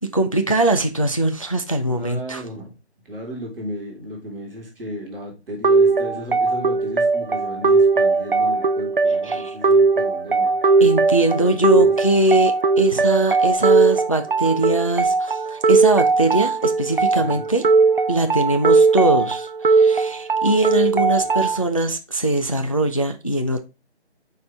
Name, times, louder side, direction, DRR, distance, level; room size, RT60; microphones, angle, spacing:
voice 1, 0.0-2.4 9.2-9.6 10.8-17.6 18.1-23.6, right 2 dB, 30° left, 0.4 m, -21 dB
voice 2, 1.9-2.7 3.1-10.5 11.4-11.9 17.2-17.4, equal, ahead, 1.7 m, -34 dB
sound 1, 5.6-21.6, right 4 dB, 50° right, 0.6 m, -18 dB
6.5 x 4.4 x 3.3 m
figure-of-eight pair, 165°, 34 cm